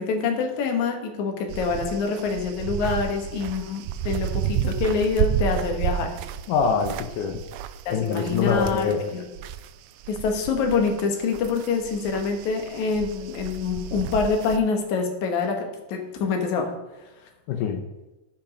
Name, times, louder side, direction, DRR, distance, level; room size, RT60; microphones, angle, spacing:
voice 1, 0.0-6.1 7.9-9.2 10.1-16.7, left 5 dB, 70° left, 3 dB, 2.7 m, -26 dB
sound 1, 1.5-9.7 10.0-14.6, right 10 dB, 85° right, 1.5 m, -31 dB
voice 2, 6.5-7.4 7.9-9.0 17.5-17.8, left 6 dB, 90° left, 4 dB, 2.5 m, -24 dB
14.0 x 5.8 x 5.3 m, 1.1 s
omnidirectional pair, 3.6 m